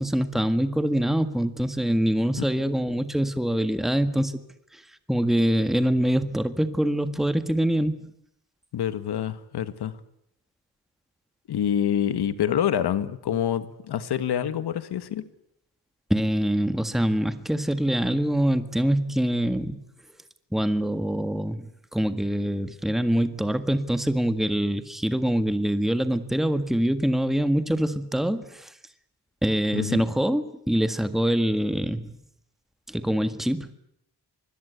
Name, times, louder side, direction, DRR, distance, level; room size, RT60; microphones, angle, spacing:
voice 1, 0.0-4.3 4.7-4.8 5.1-8.1 16.1-19.8 20.5-21.7 21.9-28.7 29.4-32.1 32.9-33.7, equal, ahead, 10 dB, 1.7 m, -24 dB
voice 2, 8.7-9.9 11.5-15.2 29.7-30.0, left 9 dB, 80° left, 12 dB, 1.8 m, -26 dB
26.0 x 21.0 x 8.3 m, 0.77 s
cardioid pair, 95°, 38 cm